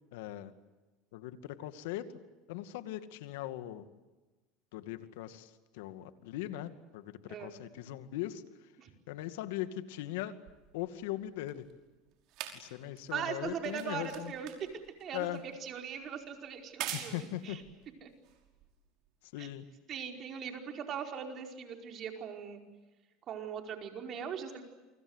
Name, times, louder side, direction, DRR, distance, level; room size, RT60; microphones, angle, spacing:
voice 1, 0.1-0.5 1.1-2.1 2.5-3.8 4.7-8.4 9.1-10.4 10.7-11.6 12.5-14.3 15.1-15.4 16.9-17.6 19.3-19.6, left 14 dB, 80° left, 10 dB, 2.2 m, -40 dB
sound 1, 10.5-19.1 19.9-20.0, right 11 dB, 60° right, 5.5 m, -46 dB
voice 2, 13.1-14.7 15.0-17.6 18.0-18.1 19.4-19.5 19.9-22.6 23.3-24.6, right 7 dB, 45° right, 4 dB, 5.0 m, -40 dB
28.5 x 26.0 x 8.2 m, 1.2 s
supercardioid pair, 110°, 0 cm